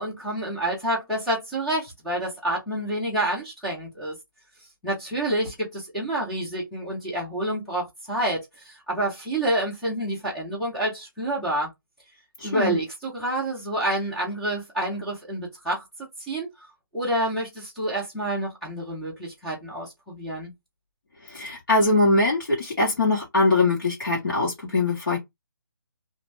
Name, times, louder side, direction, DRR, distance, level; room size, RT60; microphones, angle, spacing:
voice 1, 0.0-4.1 4.8-11.7 12.4-15.8 16.3-16.7 16.9-20.5, right 1 dB, ahead, 0.4 m, -28 dB
voice 2, 12.4-12.8 21.2-25.2, left 2 dB, 65° left, 1.3 m, -22 dB
2.5 x 2.1 x 3.1 m
hypercardioid pair, 170°, 12 cm